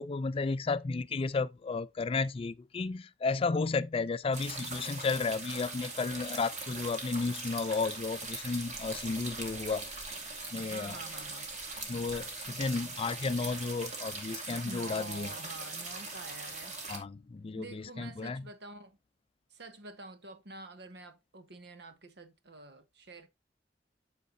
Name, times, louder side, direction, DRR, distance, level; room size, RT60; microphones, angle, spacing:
voice 1, 0.0-9.8 10.5-11.0 11.9-15.3 16.9-18.4, left 4 dB, 30° left, 0.4 m, -33 dB
sound 1, 4.3-17.0, right 3 dB, 40° right, 2.3 m, -41 dB
voice 2, 10.5-11.5 14.6-16.8 17.6-19.0 19.5-23.3, right 2 dB, 65° right, 1.2 m, -47 dB
9.2 x 6.6 x 2.7 m
head